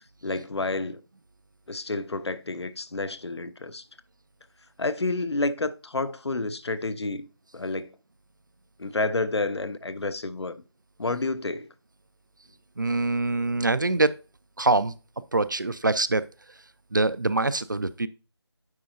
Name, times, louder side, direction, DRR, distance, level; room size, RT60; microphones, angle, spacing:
voice 1, 0.2-1.0 1.7-3.8 4.8-7.3 7.5-7.9 8.8-10.6 11.0-11.7, left 2 dB, 75° left, 0.6 m, -29 dB
voice 2, 12.8-14.1 14.6-14.9 15.3-16.2 16.9-18.1, right 2 dB, 45° right, 0.3 m, -24 dB
9.4 x 4.3 x 2.6 m
figure-of-eight pair, 170°, 14 cm